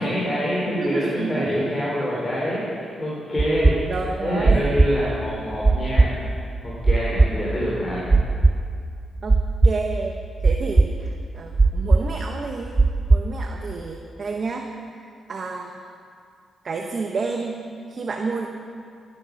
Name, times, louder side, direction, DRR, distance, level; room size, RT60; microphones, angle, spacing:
voice 1, 0.0-3.9 4.2-6.1 6.6-8.2, equal, 25° left, -6 dB, 3.6 m, -26 dB
voice 2, 0.8-1.7 3.9-4.6 9.2-9.4 9.6-12.8 13.1-15.7 16.6-18.5, right 4 dB, 50° right, 2 dB, 1.0 m, -30 dB
sound 1, 3.4-13.7, right 3 dB, 25° right, 0.5 m, -18 dB
13.0 x 11.0 x 6.4 m, 2.3 s
cardioid pair, 100°, 0 cm